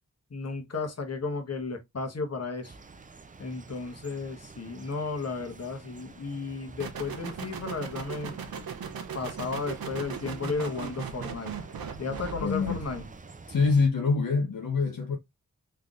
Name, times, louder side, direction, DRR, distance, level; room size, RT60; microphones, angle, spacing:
voice 1, 0.3-2.8 3.4-8.4 9.1-11.5 12.0-13.1, left 4 dB, 45° left, 1.2 m, -34 dB
sound 1, 2.6-13.9, right 4 dB, 25° right, 0.5 m, -49 dB
sound 2, 6.8-13.1, right 6 dB, 85° right, 0.8 m, -38 dB
voice 2, 12.4-12.8 13.5-15.2, left 4 dB, 70° left, 0.8 m, -25 dB
3.8 x 3.3 x 2.4 m
cardioid pair, 55°, 35 cm